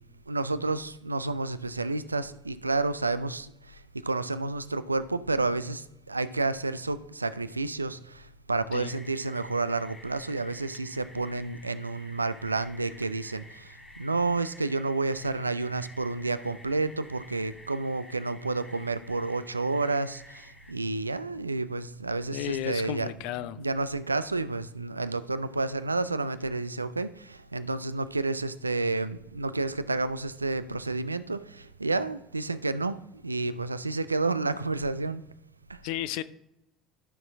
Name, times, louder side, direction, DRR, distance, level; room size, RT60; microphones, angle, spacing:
voice 1, 0.3-23.1 23.6-33.0 33.2-35.2 35.7-35.8, right 3 dB, 85° right, 0.4 m, -30 dB
sound 1, 8.8-20.7, left 1 dB, 10° left, 1.5 m, -51 dB
voice 2, 22.3-23.6 35.8-36.2, left 13 dB, 60° left, 0.5 m, -33 dB
12.0 x 6.0 x 3.5 m
figure-of-eight pair, 60°, 0 cm